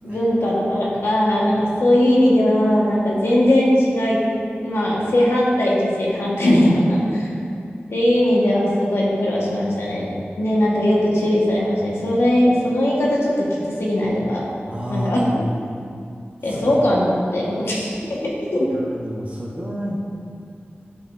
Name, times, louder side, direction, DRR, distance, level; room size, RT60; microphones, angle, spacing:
voice 1, 0.0-4.2 4.6-7.3 7.9-14.5 14.9-15.2 16.4-18.0 18.2-18.7, left 1 dB, 85° left, -5 dB, 1.4 m, -19 dB
voice 2, 14.7-15.5 16.4-16.7 18.7-20.0, equal, 35° right, -5 dB, 0.9 m, -30 dB
11.0 x 5.0 x 2.6 m, 2.4 s
wide cardioid pair, 65°, 4 cm